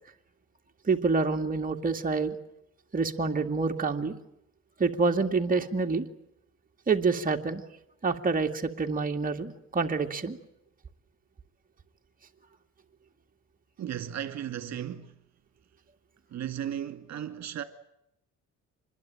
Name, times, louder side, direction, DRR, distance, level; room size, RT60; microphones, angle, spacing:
voice 1, 0.8-2.4 2.9-4.2 4.8-6.1 6.9-7.6 8.0-10.4, right 4 dB, 30° right, 2.3 m, -27 dB
voice 2, 13.8-15.1 16.3-17.6, right 10 dB, 60° right, 2.2 m, -35 dB
26.0 x 21.5 x 9.0 m
cardioid pair, 90°, 30 cm